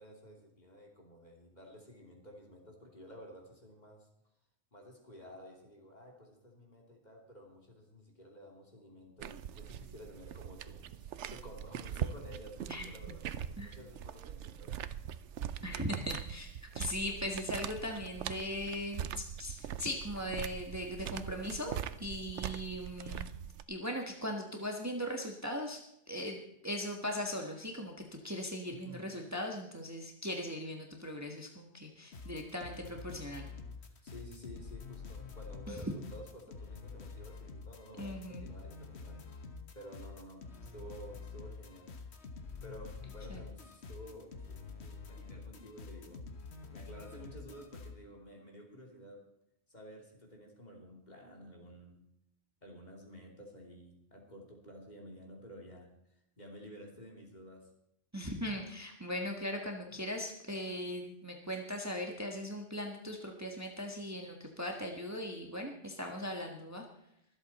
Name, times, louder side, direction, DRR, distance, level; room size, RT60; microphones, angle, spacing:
voice 1, 0.0-4.1 4.7-14.7 28.7-29.0 34.0-39.4 39.7-40.4 40.7-41.9 42.6-46.2 46.7-49.2 49.7-52.0 52.6-57.7, equal, 40° left, 0 dB, 3.1 m, -52 dB
sound 1, 9.2-23.6, right 9 dB, 90° right, 1.0 m, -42 dB
voice 2, 15.6-16.5 16.7-23.3 23.7-25.8 26.1-26.4 26.6-33.5 35.7-35.8 38.0-38.5 43.3-43.4 58.1-66.8, left 1 dB, 15° right, 2 dB, 1.5 m, -39 dB
sound 2, 32.1-48.0, left 4 dB, 70° left, 1.6 m, -47 dB
24.0 x 8.1 x 4.3 m, 0.78 s
omnidirectional pair, 1.2 m